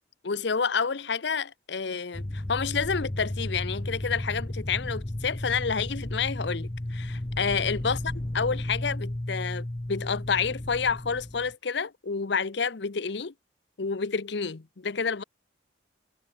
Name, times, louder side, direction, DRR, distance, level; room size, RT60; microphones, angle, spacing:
voice 1, 0.2-8.0 8.3-13.3 13.8-15.2, left 5 dB, 65° left, 0.7 m, -29 dB
sound 1, 2.1-11.5, left 1 dB, 20° left, 0.7 m, -34 dB
head